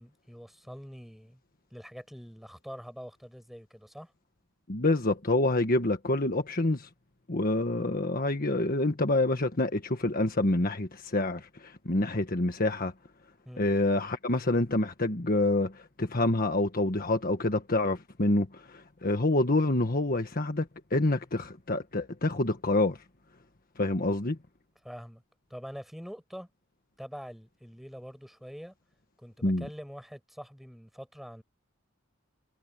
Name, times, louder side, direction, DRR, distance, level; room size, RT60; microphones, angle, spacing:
voice 1, 0.0-1.4 1.7-4.1 13.4-13.7 24.8-25.2 25.5-26.5 27.0-28.7 29.2-31.4, equal, ahead, 6.5 m, -45 dB
voice 2, 4.7-6.9 7.3-12.9 13.6-23.0 23.8-24.4 29.4-29.7, left 2 dB, 45° left, 1.5 m, -27 dB
head